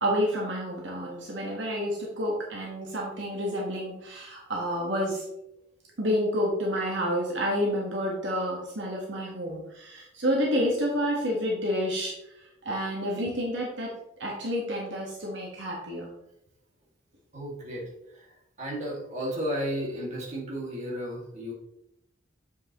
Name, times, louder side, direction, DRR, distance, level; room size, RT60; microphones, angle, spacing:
voice 1, 0.0-5.2 6.0-12.1 12.6-13.9 14.2-16.1, equal, 65° right, -2 dB, 1.4 m, -29 dB
voice 2, 17.3-21.5, equal, 35° right, -4 dB, 2.1 m, -34 dB
7.5 x 6.0 x 3.0 m, 0.83 s
head